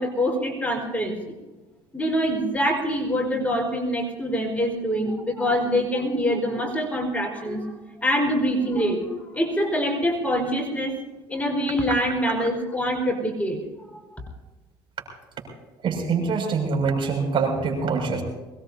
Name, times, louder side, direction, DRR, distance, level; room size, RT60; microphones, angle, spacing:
voice 1, 0.0-1.3 1.9-7.7 8.0-11.0 11.3-13.6 14.2-14.3, equal, 15° left, 2 dB, 4.9 m, -25 dB
voice 2, 15.8-18.2, right 5 dB, 45° right, 3 dB, 6.7 m, -24 dB
23.5 x 20.5 x 2.8 m, 1.2 s
supercardioid pair, 90°, 11 cm